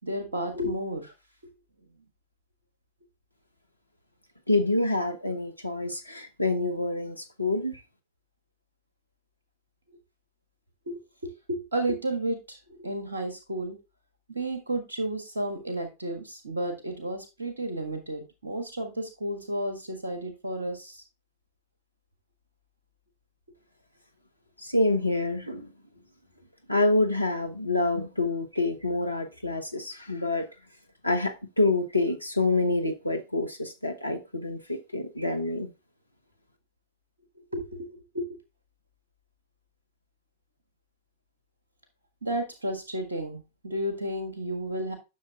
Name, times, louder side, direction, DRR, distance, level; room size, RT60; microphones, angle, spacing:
voice 1, 0.0-1.1 1.4-1.5 10.9-13.8 14.3-21.0 37.4-38.3 42.2-44.9, right 1 dB, 75° right, 1.5 m, -32 dB
voice 2, 4.5-7.8 24.6-25.7 26.7-30.5 31.0-35.7, left 2 dB, 85° left, 0.9 m, -27 dB
10.5 x 6.5 x 2.4 m
figure-of-eight pair, 90°, 0 cm